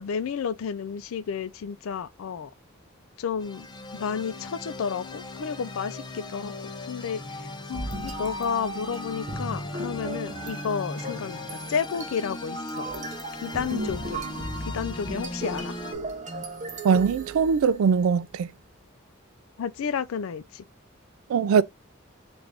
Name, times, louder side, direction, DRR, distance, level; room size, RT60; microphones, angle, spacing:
voice 1, 0.0-2.5 3.2-3.7 3.9-6.5 6.9-12.9 13.4-14.2 14.7-15.7 19.6-20.6, left 6 dB, 85° left, 0.4 m, -31 dB
sound 1, 3.4-15.9, left 2 dB, 20° left, 0.5 m, -38 dB
sound 2, 7.7-18.0, right 2 dB, 35° right, 0.7 m, -36 dB
voice 2, 16.8-18.5 21.3-21.6, right 6 dB, 85° right, 0.3 m, -21 dB
3.5 x 2.5 x 3.2 m
head